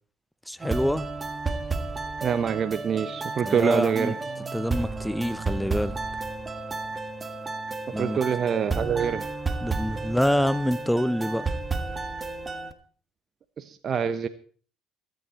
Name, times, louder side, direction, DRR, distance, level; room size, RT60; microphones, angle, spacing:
voice 1, 0.5-1.1 3.4-4.2 4.5-6.0 7.9-8.2 9.6-11.5, equal, 5° left, 0.7 m, -26 dB
sound 1, 0.6-12.7, right 3 dB, 25° right, 1.6 m, -32 dB
voice 2, 2.2-4.2 8.0-9.3 13.6-14.3, right 7 dB, 45° right, 0.9 m, -25 dB
22.5 x 9.3 x 4.2 m
hypercardioid pair, 60°, 0 cm